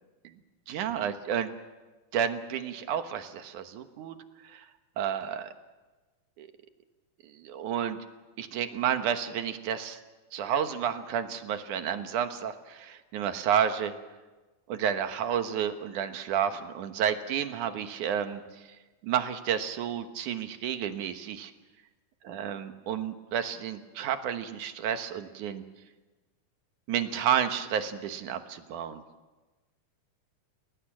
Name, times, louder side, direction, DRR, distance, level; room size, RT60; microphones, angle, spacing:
voice 1, 0.7-1.5 2.1-4.2 4.4-4.7 5.0-5.5 6.4-6.5 7.2-8.0 8.4-10.0 10.3-13.9 14.7-18.7 19.0-21.5 22.2-25.6 26.9-29.0, right 9 dB, 75° right, 8 dB, 2.7 m, -31 dB
30.0 x 19.0 x 7.5 m, 1.2 s
omnidirectional pair, 3.7 m